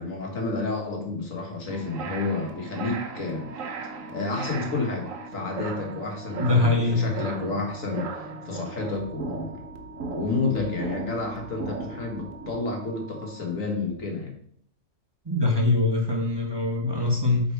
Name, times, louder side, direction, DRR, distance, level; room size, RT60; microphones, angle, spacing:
voice 1, 0.0-3.5 4.1-9.5 10.1-14.3, left 3 dB, 85° left, 1 dB, 2.0 m, -30 dB
sound 1, 1.7-12.6, right 4 dB, 85° right, 1.2 m, -37 dB
Organ, 3.3-14.1, left 1 dB, 30° left, 1.9 m, -46 dB
voice 2, 6.4-7.1 15.2-17.4, left 2 dB, 20° right, -1 dB, 1.3 m, -23 dB
7.8 x 4.2 x 4.7 m, 0.66 s
omnidirectional pair, 1.3 m